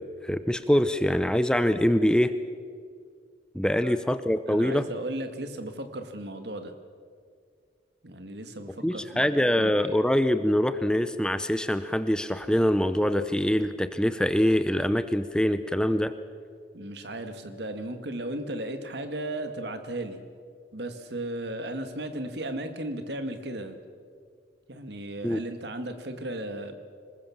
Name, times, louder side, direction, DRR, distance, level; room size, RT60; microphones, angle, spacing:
voice 1, 0.0-2.3 3.5-4.8 8.8-16.1 25.2-25.4, equal, 5° left, 11 dB, 0.6 m, -24 dB
voice 2, 4.5-6.7 8.0-9.9 16.7-20.2 20.7-23.8 24.7-26.7, right 1 dB, 60° right, 7 dB, 2.0 m, -35 dB
25.5 x 20.5 x 7.3 m, 2.1 s
head